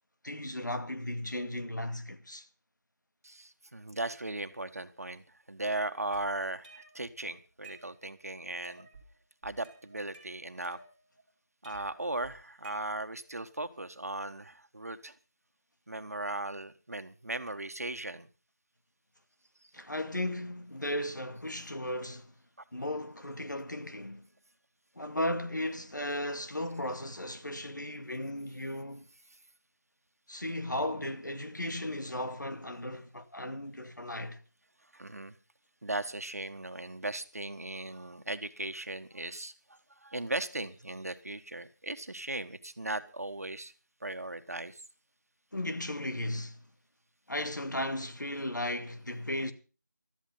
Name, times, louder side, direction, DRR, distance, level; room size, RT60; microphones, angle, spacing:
voice 1, 0.2-2.5 19.7-22.3 22.7-24.3 25.0-29.1 30.3-34.4 45.5-46.6 47.3-49.5, left 1 dB, 85° left, 2.2 m, -36 dB
voice 2, 3.2-8.9 9.4-10.8 11.6-15.1 15.9-18.3 34.9-35.4 35.8-43.7 44.0-44.8, right 2 dB, 55° right, 1.5 m, -37 dB
sound 1, 6.0-7.1 7.4-8.3 8.6-9.1 9.4-11.2 11.6-13.3, right 3 dB, 10° right, 2.3 m, -54 dB
14.0 x 13.0 x 5.6 m
figure-of-eight pair, 175°, 10 cm